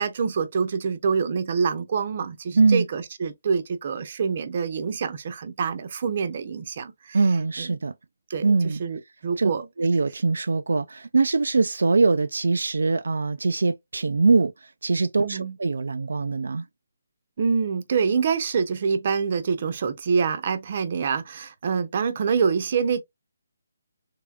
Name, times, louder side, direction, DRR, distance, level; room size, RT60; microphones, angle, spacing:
voice 1, 0.0-7.2 7.6-7.8 8.3-9.7 15.2-15.6 17.4-23.0, right 5 dB, 40° right, 0.6 m, -26 dB
voice 2, 7.1-7.9 8.4-8.8 9.4-9.5 9.8-14.5 14.8-16.7, right 3 dB, 80° right, 0.3 m, -22 dB
3.5 x 3.2 x 2.3 m
hypercardioid pair, 165°, 0 cm